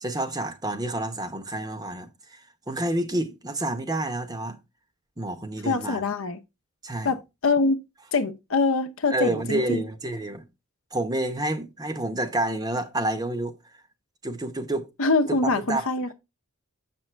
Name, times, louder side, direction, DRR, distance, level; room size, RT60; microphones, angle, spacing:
voice 1, 0.0-2.4 2.7-4.6 5.2-6.0 6.8-7.1 9.1-10.5 10.9-13.6 14.2-14.9 15.4-15.9, right 1 dB, 20° right, 0.8 m, -29 dB
voice 2, 5.6-6.4 7.0-7.8 8.1-9.8 15.0-16.1, left 3 dB, 65° left, 0.8 m, -24 dB
7.2 x 6.1 x 3.3 m
head